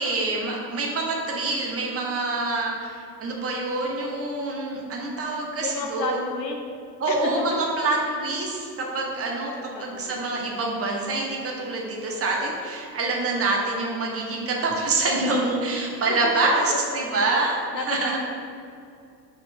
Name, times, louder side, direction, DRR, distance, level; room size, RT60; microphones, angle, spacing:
voice 1, 0.0-6.3 7.0-17.6 17.9-18.2, right 2 dB, 25° right, -1 dB, 1.1 m, -26 dB
voice 2, 5.6-6.7 7.1-7.3 9.5-10.2 16.1-17.4 17.7-18.2, left 3 dB, 80° left, 2 dB, 0.8 m, -32 dB
4.3 x 3.9 x 5.6 m, 2.5 s
figure-of-eight pair, 70°, 50 cm